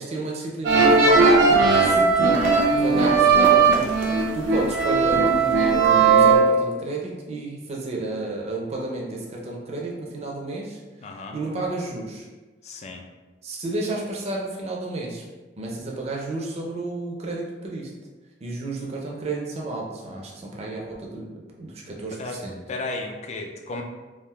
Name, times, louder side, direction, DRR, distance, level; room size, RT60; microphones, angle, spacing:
voice 1, 0.0-2.5 2.8-10.8 11.3-12.3 13.4-15.2 15.6-17.9 18.4-21.3 21.6-22.6, right 2 dB, 35° right, -2 dB, 0.5 m, -31 dB
sound 1, 0.6-6.4, right 4 dB, 80° right, 0.5 m, -17 dB
voice 2, 11.0-11.4 12.6-13.0 22.2-22.4 22.7-23.8, left 2 dB, 35° left, 2 dB, 0.3 m, -33 dB
3.4 x 2.4 x 2.2 m, 1.3 s
head